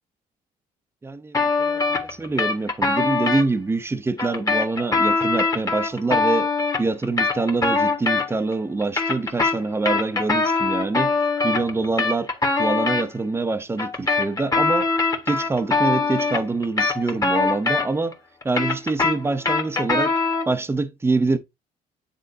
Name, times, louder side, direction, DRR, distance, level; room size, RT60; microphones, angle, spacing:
voice 1, 1.0-6.5 6.8-11.1 11.4-12.3 12.6-14.9 15.3-18.2 18.4-20.1 20.5-21.4, right 3 dB, 15° right, 0.7 m, -25 dB
sound 1, 1.3-3.4 4.2-8.5 8.8-13.0 13.8-18.1 18.4-20.5, left 3 dB, 20° left, 1.4 m, -22 dB
9.2 x 3.7 x 2.7 m
cardioid pair, 110°, 17 cm